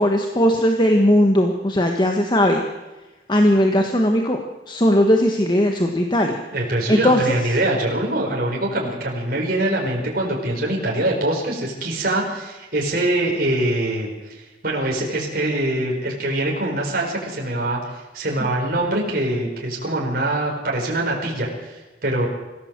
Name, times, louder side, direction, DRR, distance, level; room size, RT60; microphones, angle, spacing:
voice 1, 0.0-2.6 3.3-4.4 4.7-6.4 6.9-7.4, equal, 25° left, 3 dB, 1.5 m, -18 dB
voice 2, 6.5-22.3, right 1 dB, 50° right, -1 dB, 4.6 m, -23 dB
25.5 x 16.0 x 7.5 m, 1.1 s
head